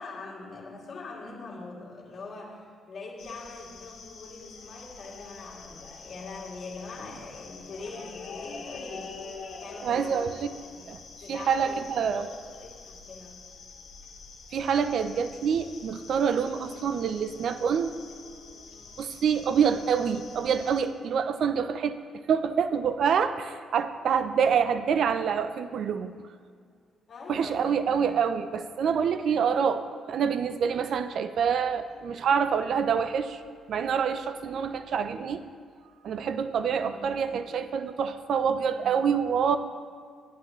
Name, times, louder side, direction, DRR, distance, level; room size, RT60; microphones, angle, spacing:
voice 1, 0.0-10.9 11.2-13.4 19.5-19.6 27.1-28.2 36.8-37.2, left 3 dB, 50° left, -3 dB, 2.6 m, -43 dB
sound 1, 3.2-20.8, left 4 dB, 70° left, 1.5 m, -46 dB
voice 2, 9.8-10.5 10.9-11.0 11.3-12.3 14.5-17.9 19.0-22.0 22.3-26.1 27.3-33.4 33.7-35.4 36.0-39.6, right 7 dB, 65° right, 11 dB, 0.5 m, -26 dB
11.0 x 11.0 x 3.1 m, 2.1 s
cardioid pair, 90°, 0 cm